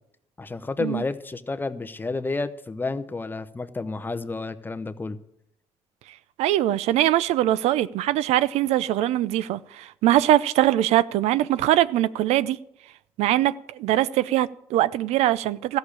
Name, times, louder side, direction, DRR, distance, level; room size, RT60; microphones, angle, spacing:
voice 1, 0.4-5.2, left 3 dB, 20° left, 0.8 m, -30 dB
voice 2, 6.4-12.6 13.2-15.8, right 13 dB, 80° right, 0.5 m, -22 dB
14.0 x 6.6 x 8.7 m
cardioid pair, 105°, 11 cm